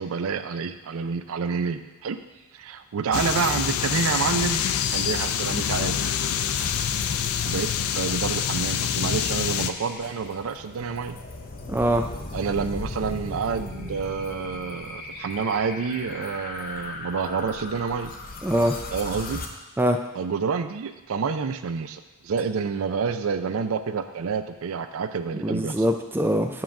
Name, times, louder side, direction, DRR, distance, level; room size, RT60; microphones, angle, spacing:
voice 1, 0.0-2.2 2.5-6.0 7.4-11.2 12.3-18.1 18.9-19.4 20.1-25.8, right 5 dB, 75° right, 10 dB, 0.4 m, -28 dB
sound 1, 3.1-9.7, left 8 dB, 80° left, 0.4 m, -26 dB
sound 2, 6.6-19.5, left 2 dB, 40° left, 0.7 m, -38 dB
voice 2, 11.7-12.1 18.4-18.8 19.8-20.0 25.3-26.6, equal, 10° right, 4 dB, 0.4 m, -23 dB
7.5 x 3.7 x 5.8 m, 1.1 s
head